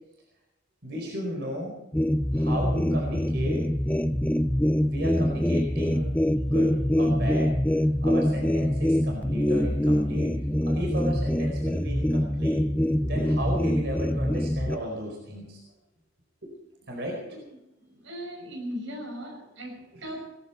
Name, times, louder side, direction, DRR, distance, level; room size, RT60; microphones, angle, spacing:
voice 1, 0.8-1.7 2.3-3.7 4.8-6.1 6.4-7.6 8.0-10.3 10.6-12.6 13.0-15.6 16.4-16.5 16.9-17.4 19.9-20.0, equal, 60° right, 0 dB, 4.7 m, -34 dB
sound 1, 1.9-14.8, left 1 dB, 10° left, 0.5 m, -24 dB
voice 2, 18.0-20.4, equal, 85° right, 3 dB, 6.4 m, -38 dB
19.0 x 15.0 x 4.5 m, 0.86 s
head